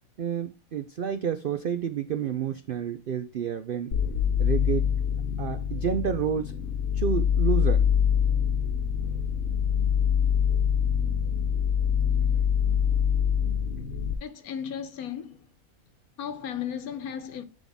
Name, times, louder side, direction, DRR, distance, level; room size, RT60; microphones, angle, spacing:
voice 1, 0.2-4.0 4.4-4.9 5.4-6.5 6.9-7.9, right 8 dB, 75° right, 0.5 m, -30 dB
sound 1, 3.9-14.2, left 8 dB, 65° left, 1.1 m, -25 dB
voice 2, 14.2-15.4 16.2-17.4, left 8 dB, 80° left, 1.3 m, -35 dB
11.0 x 3.8 x 3.6 m
omnidirectional pair, 1.5 m